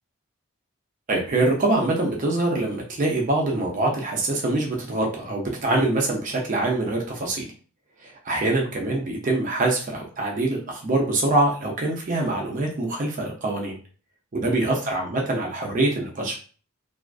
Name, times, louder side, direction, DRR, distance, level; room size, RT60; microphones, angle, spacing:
voice 1, 1.1-7.5 8.0-13.8 14.3-16.4, right 2 dB, 40° right, 0 dB, 0.5 m, -24 dB
2.4 x 2.3 x 2.3 m, 0.39 s
head